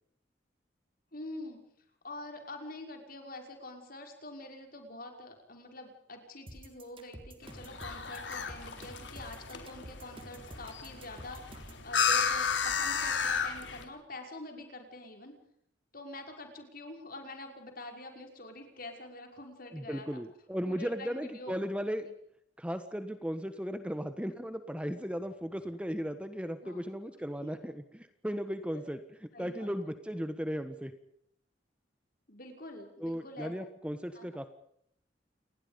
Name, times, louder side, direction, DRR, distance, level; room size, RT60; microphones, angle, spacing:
voice 1, 1.1-1.6 2.0-11.4 11.8-15.3 15.9-20.1 20.6-21.6 22.0-22.1 26.6-26.9 28.7-28.9 29.3-29.7 32.3-33.5 34.1-34.3, left 2 dB, 55° left, 4 dB, 5.9 m, -46 dB
sound 1, 6.5-11.8, right 1 dB, 30° right, 4.1 m, -49 dB
sound 2, 7.4-13.8, left 6 dB, 90° left, 3.9 m, -33 dB
voice 2, 19.7-22.1 22.6-30.9 33.0-34.5, equal, 5° right, 10 dB, 1.4 m, -36 dB
29.0 x 20.5 x 5.3 m, 0.70 s
head